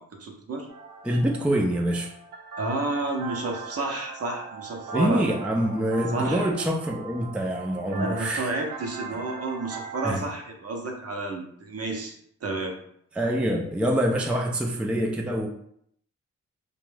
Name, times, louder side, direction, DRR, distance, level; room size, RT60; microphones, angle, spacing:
voice 1, 0.2-0.7 2.6-5.2 6.1-6.5 7.9-12.8, right 2 dB, 50° right, 2 dB, 0.7 m, -31 dB
sound 1, 0.7-10.1, right 4 dB, 85° right, 0.7 m, -40 dB
voice 2, 1.0-2.1 4.9-8.5 10.0-10.2 13.2-15.5, right 1 dB, 5° right, 0 dB, 0.4 m, -25 dB
2.5 x 2.2 x 3.3 m, 0.68 s
cardioid pair, 55°, 32 cm